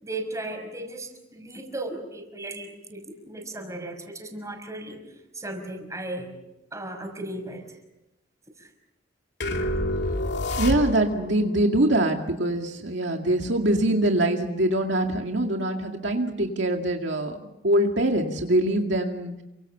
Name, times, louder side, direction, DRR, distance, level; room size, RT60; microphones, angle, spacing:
voice 1, 0.0-5.0 5.4-6.3 6.7-7.6 8.6-8.7, right 2 dB, 15° right, 5 dB, 5.8 m, -36 dB
sound 1, 9.4-11.3, left 1 dB, 65° left, 2.7 m, -27 dB
voice 2, 10.6-17.4 17.6-19.3, right 1 dB, 70° right, 3 dB, 2.2 m, -23 dB
29.5 x 24.5 x 6.9 m, 0.92 s
head